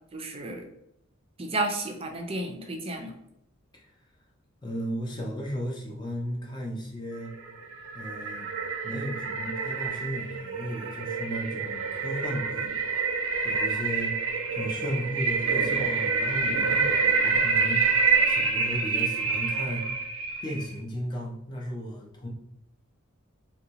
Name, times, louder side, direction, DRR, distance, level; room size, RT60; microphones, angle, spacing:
voice 1, 0.1-0.6 1.4-3.1, right 2 dB, 30° right, 4 dB, 0.5 m, -32 dB
voice 2, 4.6-7.3 7.9-8.5 8.8-12.7 13.4-19.9 20.4-22.3, equal, 20° left, -2 dB, 0.5 m, -35 dB
sound 1, 7.3-20.7, right 5 dB, 85° right, 0.5 m, -27 dB
3.8 x 2.2 x 2.8 m, 0.79 s
head